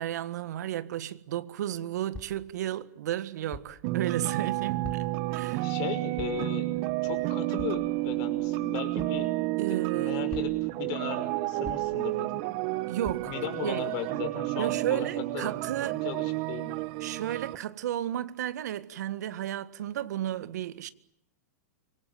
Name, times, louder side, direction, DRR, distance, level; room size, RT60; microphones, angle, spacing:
voice 1, 0.0-5.0 5.3-5.7 9.6-10.3 12.9-13.3 13.6-13.9 14.6-16.0 17.0-20.9, right 12 dB, 70° right, 1.8 m, -33 dB
sound 1, 2.1-2.5 3.5-3.8 4.8-5.3 6.2-6.5 7.6-7.9 9.0-9.2 10.3-10.8 11.6-12.1 13.0-13.5, left 3 dB, 15° left, 3.9 m, -43 dB
sound 2, 3.8-17.6, right 19 dB, 45° right, 1.1 m, -31 dB
voice 2, 5.6-6.7 7.0-9.3 9.7-12.4 13.3-15.1 15.3-15.5 16.0-16.8 17.2-17.3, left 10 dB, 45° left, 5.8 m, -37 dB
26.0 x 25.0 x 9.0 m
hypercardioid pair, 140°, 9 cm